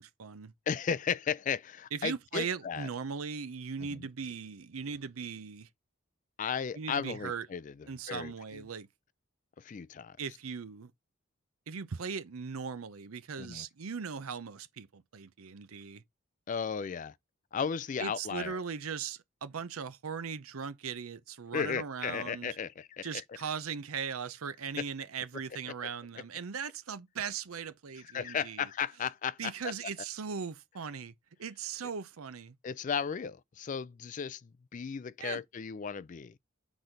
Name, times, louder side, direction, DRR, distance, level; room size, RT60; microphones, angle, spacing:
voice 1, 0.0-0.5 1.9-5.7 6.7-7.5 7.9-8.9 10.2-10.9 11.7-16.0 18.0-22.5 23.0-28.7 29.4-31.1 31.4-32.5 35.2-35.4, right 6 dB, 85° right, 0.6 m, -39 dB
voice 2, 0.7-2.9 3.9-4.1 6.4-7.7 8.1-8.6 9.6-10.2 13.4-13.7 16.5-17.1 17.5-18.6 21.5-23.2 28.1-29.7 32.6-36.3, left 7 dB, 35° left, 0.3 m, -35 dB
6.1 x 4.0 x 5.1 m
head